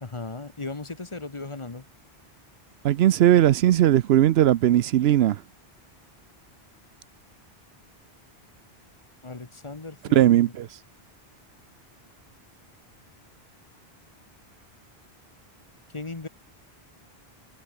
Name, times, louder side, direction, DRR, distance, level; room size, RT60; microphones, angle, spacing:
voice 1, 0.0-1.8 9.2-10.6 15.9-16.3, left 3 dB, 30° left, 1.1 m, -37 dB
voice 2, 2.8-5.4 10.1-10.7, right 12 dB, 80° right, 0.8 m, -18 dB
omnidirectional pair, 1.1 m